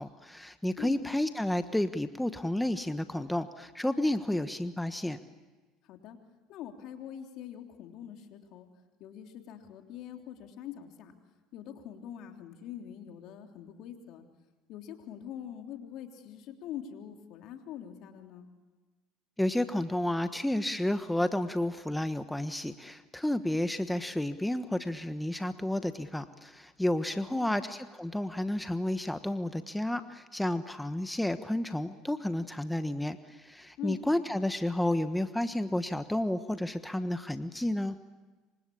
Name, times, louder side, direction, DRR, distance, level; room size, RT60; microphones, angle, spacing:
voice 1, 0.0-5.2 19.4-37.9, left 1 dB, 5° left, 10 dB, 1.3 m, -31 dB
voice 2, 5.8-6.2 6.5-8.7 9.0-11.1 11.5-14.2 14.7-18.5 27.1-27.6 33.8-34.1, left 10 dB, 65° left, 4 dB, 3.2 m, -44 dB
27.5 x 25.0 x 8.6 m, 1.2 s
hypercardioid pair, 80°, 0 cm